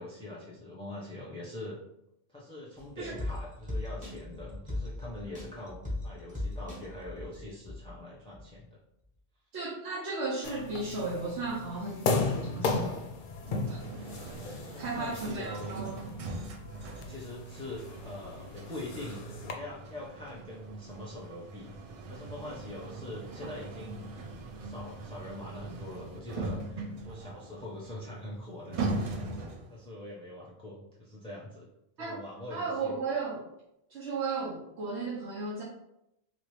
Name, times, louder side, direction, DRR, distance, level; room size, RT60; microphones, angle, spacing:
voice 1, 0.0-1.8 2.3-8.8 14.7-16.0 17.0-19.2 19.5-21.7 22.1-24.1 24.6-29.4 29.7-31.7 32.0-32.9, left 1 dB, 10° left, -7 dB, 0.4 m, -43 dB
sound 1, 2.8-8.0 8.3-8.4, left 1 dB, 10° right, 1.0 m, -38 dB
voice 2, 9.5-13.0 13.7-14.1 14.8-16.0 32.0-32.2 32.5-33.5 33.9-35.6, right 3 dB, 85° right, -6 dB, 1.0 m, -35 dB
sound 2, 10.4-19.5, left 3 dB, 60° left, 0.6 m, -36 dB
sound 3, 13.4-29.8, right 3 dB, 55° right, 0.4 m, -41 dB
2.9 x 2.8 x 3.2 m, 0.81 s
omnidirectional pair, 1.1 m